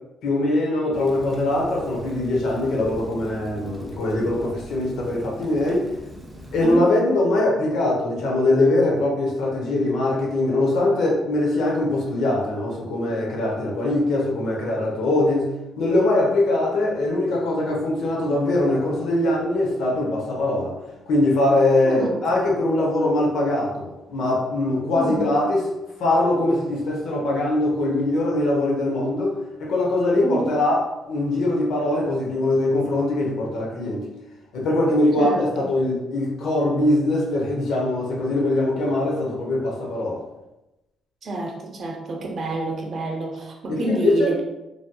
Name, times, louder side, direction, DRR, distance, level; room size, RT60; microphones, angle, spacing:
voice 1, 0.2-5.8 6.5-15.5 15.8-20.8 21.1-25.6 26.0-29.3 29.6-34.1 34.5-40.2 43.7-44.3, left 2 dB, 80° left, -2 dB, 0.8 m, -22 dB
Rain, 0.9-6.8, equal, 15° right, 0.6 m, -41 dB
voice 2, 6.6-6.9 21.8-22.3 24.9-25.3 30.2-30.6 35.2-35.7 41.2-44.4, right 2 dB, 55° right, 1 dB, 0.6 m, -28 dB
3.2 x 2.6 x 2.2 m, 0.98 s
cardioid pair, 90°, 0 cm